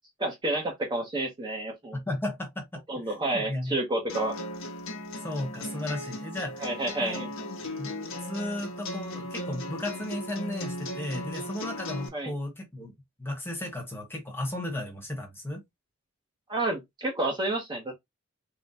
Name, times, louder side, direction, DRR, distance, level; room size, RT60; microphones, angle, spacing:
voice 1, 0.2-2.0 2.9-4.4 6.6-7.3 12.1-12.3 16.5-17.9, right 2 dB, 20° right, 0.9 m, -30 dB
voice 2, 1.9-3.8 5.2-6.7 7.0-7.3 7.8-7.9 8.2-12.9 13.2-15.6, left 1 dB, 10° left, 1.1 m, -35 dB
sound 1, 4.1-12.1, left 1 dB, 75° left, 0.9 m, -37 dB
3.8 x 2.2 x 4.1 m
head